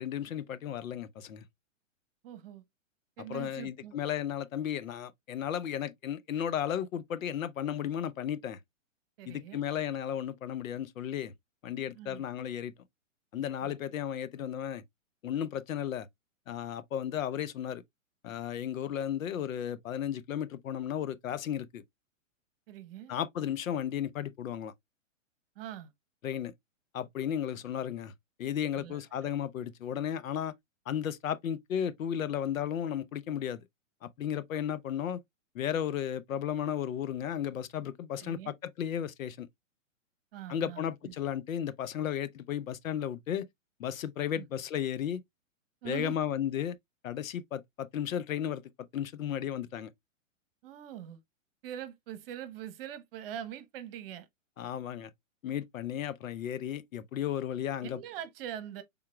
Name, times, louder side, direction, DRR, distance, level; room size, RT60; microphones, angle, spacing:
voice 1, 0.0-1.4 3.3-8.6 9.3-11.3 11.6-12.7 13.3-14.8 15.2-16.1 16.5-17.8 18.2-21.8 23.1-24.7 26.2-26.5 26.9-28.1 28.4-30.5 30.9-33.6 34.0-35.2 35.5-39.5 40.5-43.5 43.8-45.2 45.8-46.8 47.0-48.6 48.9-49.9 54.6-55.1 55.4-58.0, left 9 dB, 80° left, 0.7 m, -34 dB
voice 2, 2.2-2.6 3.2-3.9 9.2-9.7 11.9-12.2 13.6-13.7 22.7-23.1 25.6-25.9 28.8-29.0 38.2-38.5 40.3-41.1 44.4-44.5 45.8-46.2 50.6-51.2 51.6-54.3 57.8-58.8, right 10 dB, 45° right, 1.0 m, -43 dB
5.7 x 3.6 x 2.2 m
hypercardioid pair, 135°, 39 cm